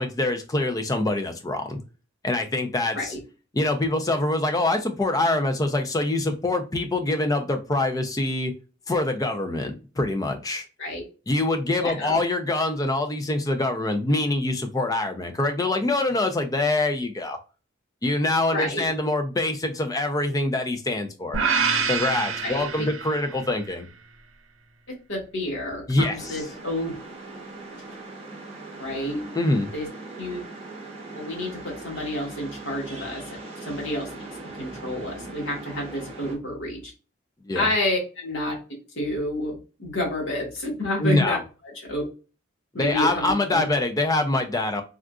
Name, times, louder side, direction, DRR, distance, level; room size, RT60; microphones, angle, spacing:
voice 1, 0.0-1.8 2.2-3.1 3.5-8.5 8.9-10.7 11.3-17.4 18.0-21.4 21.9-23.9 25.9-26.4 29.3-29.7 37.5-37.7 41.0-41.4 42.8-44.8, left 2 dB, 15° left, 0.4 m, -24 dB
voice 2, 11.8-12.2 18.5-18.9 22.4-22.9 25.1-26.9 28.8-29.2 29.7-29.9 30.2-30.4 31.1-33.2 33.6-34.1 34.5-36.9 37.5-38.5 38.9-41.4 41.8-42.1 42.7-43.7, left 1 dB, 65° left, 1.4 m, -29 dB
sound 1, 21.3-23.5, right 5 dB, 80° right, 0.6 m, -26 dB
sound 2, 26.2-36.4, right 2 dB, 30° right, 0.9 m, -40 dB
3.6 x 2.4 x 2.3 m
head